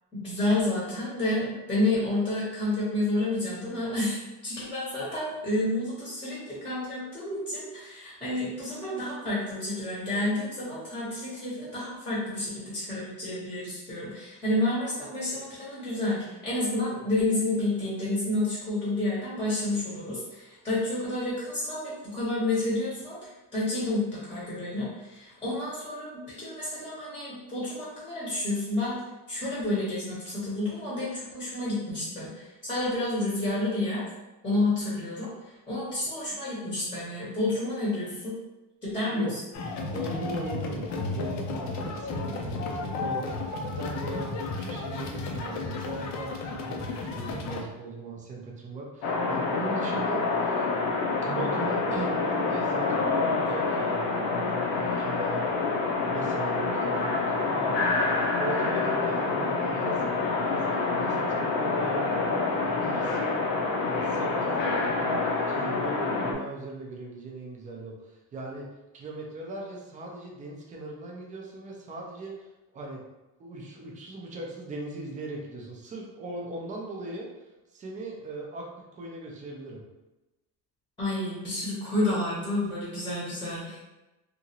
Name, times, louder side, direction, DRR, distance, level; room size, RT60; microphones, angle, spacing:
voice 1, 0.1-29.0 29.3-34.0 34.4-35.3 35.7-38.4 38.8-39.4 81.0-83.8, left 2 dB, 10° left, -8 dB, 0.8 m, -30 dB
sound 1, 39.5-47.6, left 3 dB, 45° left, 0.4 m, -33 dB
voice 2, 39.9-50.6 51.2-55.5 56.1-57.9 58.4-62.3 62.7-63.4 63.8-68.7 68.9-72.5 72.7-73.0 73.4-77.3 77.7-79.8, right 2 dB, 20° right, -1 dB, 0.3 m, -38 dB
sound 2, 49.0-66.3, left 3 dB, 85° left, 0.7 m, -27 dB
2.9 x 2.4 x 2.8 m, 1.0 s
cardioid pair, 170°, 41 cm